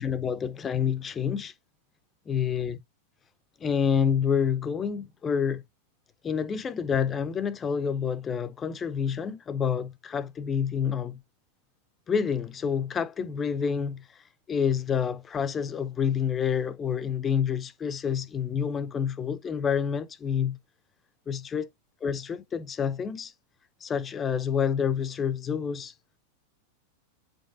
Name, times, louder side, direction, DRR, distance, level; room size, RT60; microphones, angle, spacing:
voice 1, 0.0-1.5 2.3-2.8 3.6-5.6 6.2-11.2 12.1-14.0 14.5-20.6 21.3-21.7 22.0-23.3 23.8-25.9, left 7 dB, 20° left, 0.6 m, -28 dB
8.7 x 5.1 x 2.5 m
figure-of-eight pair, 90°, 0 cm